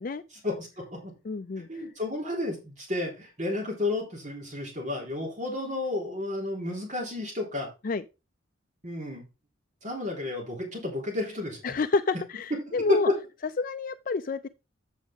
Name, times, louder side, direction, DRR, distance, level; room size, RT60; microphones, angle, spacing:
voice 1, 0.4-1.1 1.6-7.7 8.8-9.2 9.8-11.6 12.9-13.2, left 2 dB, 35° right, 3.2 m, -31 dB
voice 2, 1.2-1.7 7.8-8.0 11.6-13.1 13.6-14.5, left 4 dB, 40° left, 0.4 m, -29 dB
8.2 x 7.2 x 3.6 m
head